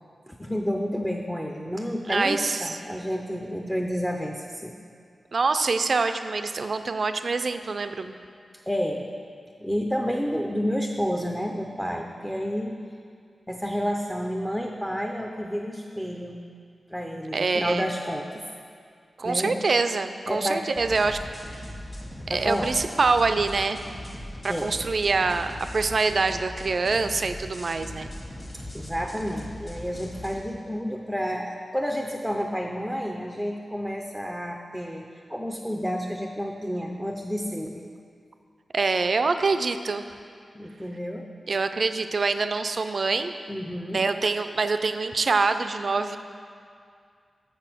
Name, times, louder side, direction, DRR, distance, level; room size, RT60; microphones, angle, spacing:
voice 1, 0.3-4.8 8.7-9.0 9.6-12.7 13.5-16.4 16.9-18.4 19.2-19.6 20.3-20.7 22.3-22.8 24.5-24.7 28.7-37.9 40.5-41.3 43.5-44.0, equal, 5° left, 2 dB, 0.5 m, -30 dB
voice 2, 2.1-2.7 5.3-8.1 17.3-17.9 19.2-21.2 21.5-21.6 22.3-23.8 24.4-28.1 38.7-40.1 41.5-43.3 43.9-46.2, right 4 dB, 55° right, 9 dB, 0.4 m, -25 dB
sound 1, 20.8-30.3, left 1 dB, 30° left, 1.4 m, -39 dB
6.9 x 6.8 x 5.9 m, 2.2 s
wide cardioid pair, 110°, 0 cm